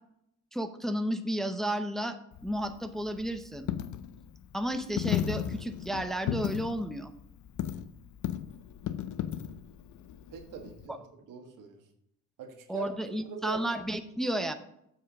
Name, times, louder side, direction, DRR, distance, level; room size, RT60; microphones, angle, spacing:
voice 1, 0.5-2.2 2.4-3.7 4.5-7.1 10.9-11.0 12.7-14.5, equal, ahead, 8 dB, 0.6 m, -32 dB
Coin (dropping), 2.3-10.9, left 10 dB, 70° left, 0.5 m, -36 dB
voice 2, 10.3-11.8 12.4-12.9 13.2-13.6, right 8 dB, 85° right, 3 dB, 1.6 m, -41 dB
7.9 x 4.9 x 5.9 m, 0.77 s
cardioid pair, 100°, 31 cm